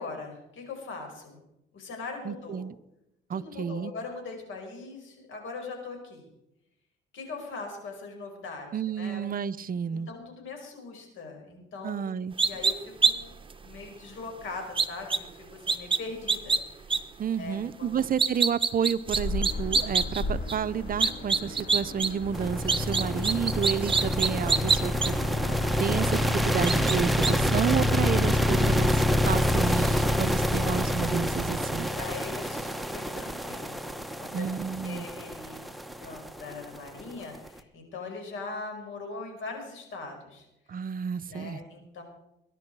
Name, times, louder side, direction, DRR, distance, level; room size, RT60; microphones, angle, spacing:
voice 1, 0.0-1.4 1.7-2.6 3.3-6.3 7.1-9.2 9.9-12.0 12.4-13.3 13.6-17.0 17.4-17.9 31.9-33.8 34.2-34.4 34.8-35.6 36.0-40.8 41.3-42.0, left 3 dB, 80° left, 3 dB, 5.5 m, -41 dB
voice 2, 2.2-2.7 3.3-3.9 8.7-10.1 11.8-12.3 17.2-25.1 25.8-31.9 34.3-35.1 40.7-41.6, right 7 dB, 45° right, 15 dB, 0.7 m, -30 dB
sound 1, 12.4-12.7 13.0-13.1 13.5-13.6 14.8-15.2 15.7-16.0 16.3-16.6 16.9-17.0 18.0-20.2 20.5-20.6 21.0-22.1 22.3-25.1 25.7-25.8 26.7-27.0 27.2-27.3, right 4 dB, 25° right, 1.2 m, -24 dB
sound 2, 19.1-29.2, left 1 dB, 60° left, 3.7 m, -37 dB
sound 3, 22.3-37.5, left 1 dB, ahead, 1.1 m, -27 dB
21.5 x 11.0 x 4.7 m, 0.84 s
cardioid pair, 90°, 20 cm